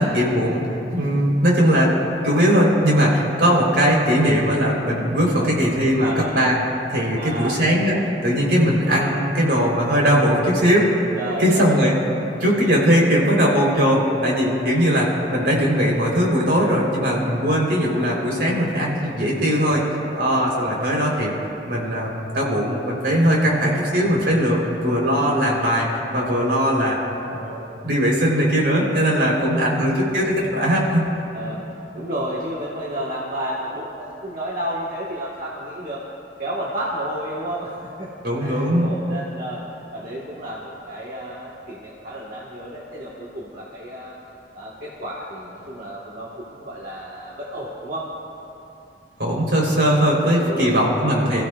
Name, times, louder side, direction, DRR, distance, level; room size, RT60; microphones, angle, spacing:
voice 1, 0.0-1.9 2.2-6.5 6.9-8.0 8.2-11.1 11.4-11.9 12.4-19.8 20.1-21.3 21.7-27.0 27.3-31.1 38.2-38.9 49.2-51.4, equal, 75° right, -3 dB, 3.9 m, -19 dB
voice 2, 6.0-6.3 7.1-7.6 11.1-11.9 29.3-29.8 31.3-36.0 36.4-38.1 38.4-39.7 39.9-44.2 44.5-48.1 50.0-51.4, right 1 dB, 50° right, -6 dB, 1.5 m, -31 dB
26.0 x 14.5 x 2.5 m, 2.8 s
head